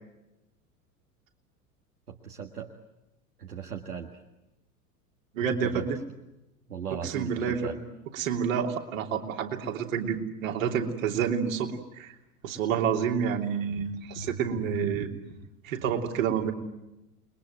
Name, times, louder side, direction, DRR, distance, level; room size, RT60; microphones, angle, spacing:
voice 1, 2.1-2.7 3.4-4.2 5.6-5.9 6.7-7.8, right 7 dB, 80° right, 3 dB, 1.8 m, -37 dB
voice 2, 5.3-6.0 6.9-7.8 8.1-12.1 12.4-15.1 15.6-16.5, right 7 dB, 60° right, 3 dB, 3.2 m, -29 dB
29.5 x 22.0 x 9.2 m, 0.98 s
figure-of-eight pair, 80°, 45 cm